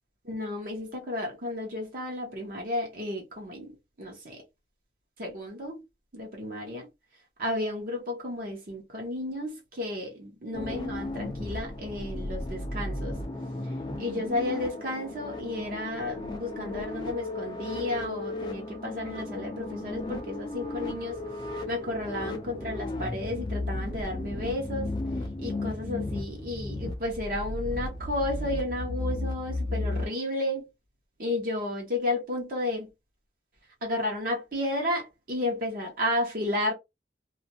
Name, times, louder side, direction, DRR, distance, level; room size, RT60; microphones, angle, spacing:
voice 1, 0.2-3.7 4.0-4.4 5.2-5.8 6.1-6.9 7.4-13.1 14.0-21.2 21.7-24.9 25.4-30.7 31.2-32.9 33.8-36.7, left 1 dB, 50° right, 0.9 m, -32 dB
sound 1, 10.5-30.0, left 2 dB, 25° left, 0.4 m, -34 dB
2.4 x 2.0 x 2.8 m
head